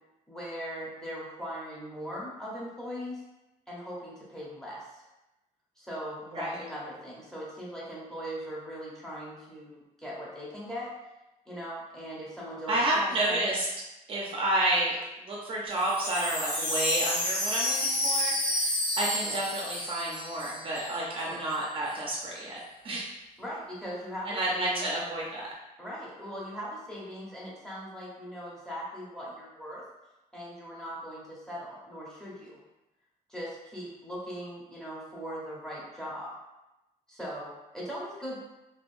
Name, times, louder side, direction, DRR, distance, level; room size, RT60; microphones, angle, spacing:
voice 1, 0.3-3.2 3.7-5.0 5.8-10.9 11.5-13.4 19.2-19.4 21.2-21.4 23.4-24.8 25.8-29.8 30.3-32.6 33.3-36.3 37.1-38.4, equal, 5° left, -6 dB, 0.7 m, -39 dB
voice 2, 12.7-13.7 14.1-15.0 15.3-23.1 24.3-25.5, right 1 dB, 35° right, -4 dB, 0.5 m, -30 dB
Wind chime, 15.7-20.9 21.2-21.3 21.5-22.0, left 1 dB, 35° left, 1.3 m, -30 dB
3.5 x 2.4 x 2.5 m, 0.98 s
cardioid pair, 180°, 15 cm